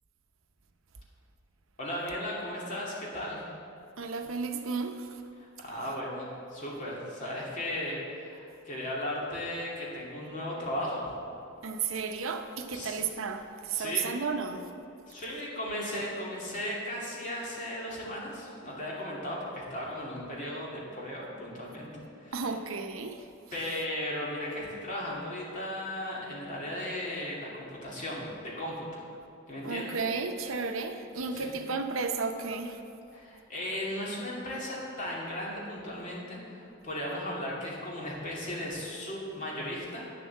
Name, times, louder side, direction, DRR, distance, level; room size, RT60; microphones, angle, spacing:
voice 1, 1.8-3.4 5.4-11.1 12.7-13.0 13.7-14.1 15.1-21.9 22.2-22.6 23.5-29.0 29.5-30.0 31.3-31.6 33.1-40.1, left 1 dB, 40° left, -5 dB, 2.6 m, -36 dB
voice 2, 4.0-5.1 11.6-14.6 22.3-23.2 29.6-32.8, right 5 dB, 75° right, 6 dB, 0.7 m, -33 dB
9.4 x 7.6 x 7.3 m, 2.6 s
head